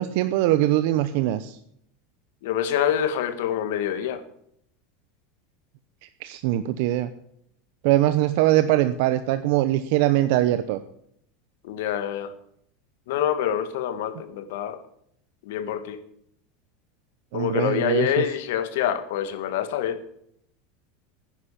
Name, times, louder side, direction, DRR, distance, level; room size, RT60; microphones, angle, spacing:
voice 1, 0.0-1.6 6.2-7.1 7.8-10.8 17.3-18.3, right 14 dB, 60° right, 0.7 m, -22 dB
voice 2, 2.4-4.2 11.6-12.3 13.1-14.8 15.5-16.0 17.3-20.0, left 10 dB, 70° left, 1.7 m, -26 dB
10.5 x 10.0 x 8.5 m
supercardioid pair, 165°, 0 cm